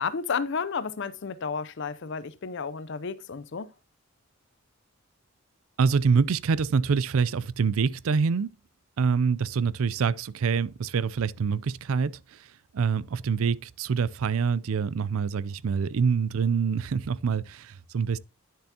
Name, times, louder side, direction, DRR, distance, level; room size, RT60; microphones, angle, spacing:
voice 1, 0.0-3.7, left 5 dB, 55° left, 0.5 m, -32 dB
voice 2, 5.8-8.5 9.0-12.5 12.7-18.2, right 5 dB, 70° right, 0.4 m, -26 dB
10.5 x 6.9 x 2.8 m
head